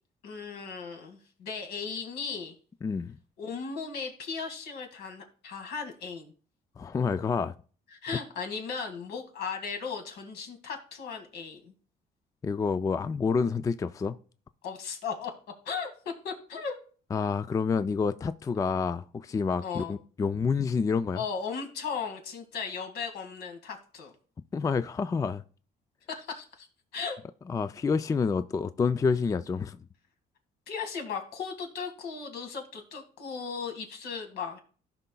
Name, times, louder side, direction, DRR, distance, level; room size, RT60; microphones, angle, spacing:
voice 1, 0.2-2.5 3.4-6.3 8.0-11.7 14.6-15.3 15.7-15.9 16.2-16.8 19.6-19.9 21.1-24.1 26.1-26.7 26.9-27.2 30.7-34.6, left 5 dB, 80° left, 2.0 m, -36 dB
voice 2, 2.8-3.2 6.8-7.5 8.1-8.2 12.4-14.2 17.1-21.2 24.5-25.4 27.5-29.8, left 5 dB, 20° left, 0.3 m, -28 dB
15.5 x 5.6 x 2.3 m
cardioid pair, 110°, 17 cm